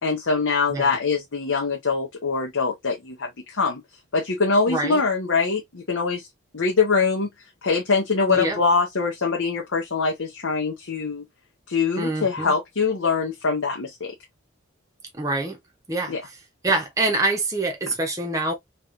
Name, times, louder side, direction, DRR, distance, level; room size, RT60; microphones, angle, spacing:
voice 1, 0.0-3.8 4.1-6.3 6.5-7.3 7.6-11.3 11.7-14.1 16.1-16.2, left 4 dB, 75° left, 0.8 m, -23 dB
voice 2, 4.7-5.0 8.3-8.6 12.0-12.5 15.2-15.6 15.9-16.1 16.6-18.5, right 2 dB, 15° right, 0.7 m, -25 dB
3.1 x 2.9 x 2.5 m
head